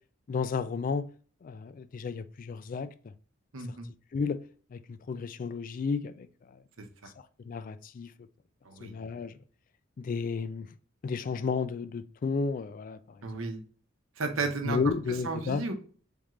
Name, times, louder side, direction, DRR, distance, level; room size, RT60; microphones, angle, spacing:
voice 1, 0.3-1.1 1.4-2.9 4.1-4.4 4.7-6.3 7.5-8.1 8.8-9.4 10.0-10.7 11.0-13.2 14.6-15.6, left 5 dB, 45° left, 0.3 m, -32 dB
voice 2, 3.5-3.9 6.8-7.1 8.6-8.9 13.2-13.6 14.2-14.8 15.2-15.7, right 3 dB, 85° right, 0.9 m, -33 dB
3.7 x 3.5 x 3.1 m
head